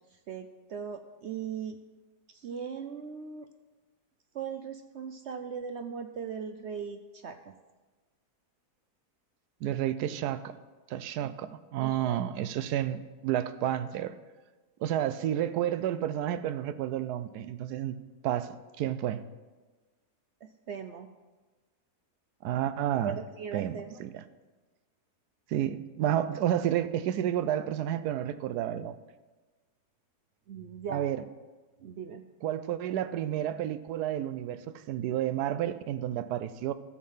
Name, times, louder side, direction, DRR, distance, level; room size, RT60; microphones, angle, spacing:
voice 1, 0.3-1.8 2.3-3.5 4.3-7.5 11.2-12.2 20.4-21.1 23.0-24.0 30.5-31.1 31.8-32.2, right 6 dB, 65° right, 7 dB, 0.6 m, -39 dB
voice 2, 9.6-10.5 10.9-14.1 14.8-18.0 18.2-19.2 22.4-23.2 23.5-24.2 25.5-29.0 30.9-31.2 32.4-36.7, right 11 dB, 90° right, 13 dB, 1.2 m, -31 dB
12.5 x 7.4 x 5.6 m, 1.3 s
omnidirectional pair, 1.7 m